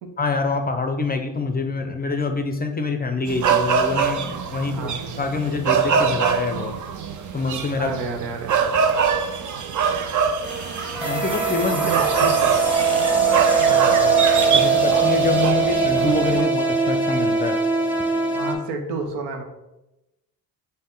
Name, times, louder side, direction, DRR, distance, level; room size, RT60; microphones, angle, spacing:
voice 1, 0.2-4.9 5.2-6.7 7.3-7.9 11.0-11.8 12.2-12.3 14.5-17.6, left 3 dB, 25° left, 6 dB, 0.5 m, -25 dB
sound 1, 3.3-16.4, right 6 dB, 45° right, 0.5 m, -24 dB
voice 2, 4.7-5.0 7.8-8.7 11.6-12.5 13.6-14.2 18.3-19.4, right 4 dB, 75° right, 4 dB, 0.8 m, -30 dB
sound 2, 10.4-15.5, right 1 dB, 25° right, 1.0 m, -32 dB
sound 3, 11.0-18.5, right 5 dB, 5° right, 0.8 m, -21 dB
5.2 x 2.2 x 3.8 m, 0.96 s
supercardioid pair, 60°, 42 cm